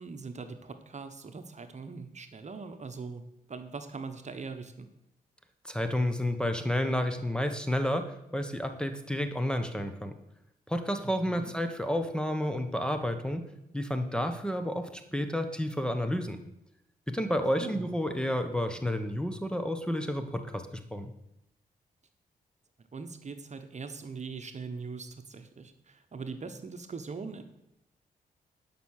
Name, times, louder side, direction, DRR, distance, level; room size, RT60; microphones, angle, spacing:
voice 1, 0.0-3.2 3.5-4.9 11.0-11.5 17.6-17.9 22.9-27.4, right 4 dB, 45° right, 8 dB, 1.2 m, -41 dB
voice 2, 5.6-10.1 10.7-13.4 13.7-16.4 17.1-21.1, equal, 5° left, 7 dB, 1.2 m, -30 dB
11.0 x 5.9 x 6.6 m, 0.85 s
cardioid pair, 60°, 16 cm